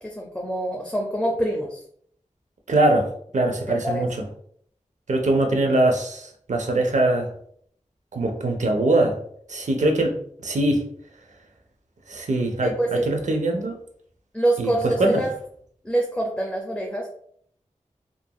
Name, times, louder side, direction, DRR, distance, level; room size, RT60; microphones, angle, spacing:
voice 1, 0.0-1.8 3.7-4.1 5.7-5.8 12.6-13.1 14.3-15.3 15.8-17.1, right 1 dB, 10° left, -1 dB, 0.5 m, -25 dB
voice 2, 2.7-3.1 3.3-4.1 5.1-7.3 8.1-9.2 9.5-10.2 10.4-10.8 12.1-13.7 14.6-15.2, right 2 dB, 70° right, 3 dB, 0.6 m, -22 dB
2.8 x 2.5 x 2.3 m, 0.63 s
cardioid pair, 40°, 13 cm